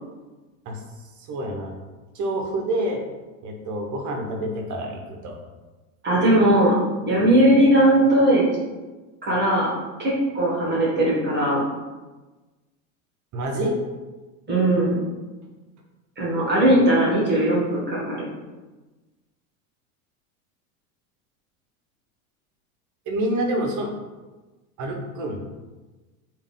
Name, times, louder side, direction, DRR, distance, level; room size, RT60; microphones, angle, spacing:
voice 1, 1.2-1.7 2.1-3.0 3.4-5.4 13.3-13.8 23.1-23.9 24.8-25.4, right 1 dB, 45° right, 2 dB, 0.9 m, -27 dB
voice 2, 6.0-6.7 7.1-8.4 9.2-9.7 10.0-11.6 14.5-15.0 16.2-18.2, right 1 dB, 25° right, -6 dB, 1.4 m, -19 dB
3.5 x 2.6 x 3.7 m, 1.2 s
hypercardioid pair, 95°, 42 cm